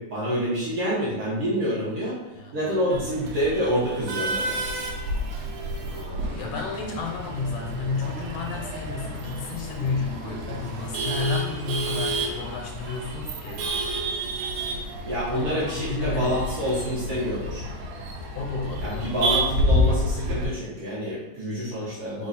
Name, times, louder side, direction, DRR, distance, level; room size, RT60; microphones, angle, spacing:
voice 1, 0.0-2.2 2.5-4.6 15.0-17.6 18.8-22.3, equal, 65° right, -7 dB, 1.4 m, -27 dB
voice 2, 2.4-2.8 5.8-13.6 15.3-16.4 18.4-19.0, left 4 dB, 85° left, 1 dB, 2.1 m, -32 dB
Male speech man speaking / Laughter / Chatter, 2.9-20.4, equal, 80° right, 2.1 m, -30 dB
5.0 x 2.4 x 3.9 m, 1.0 s
omnidirectional pair, 3.8 m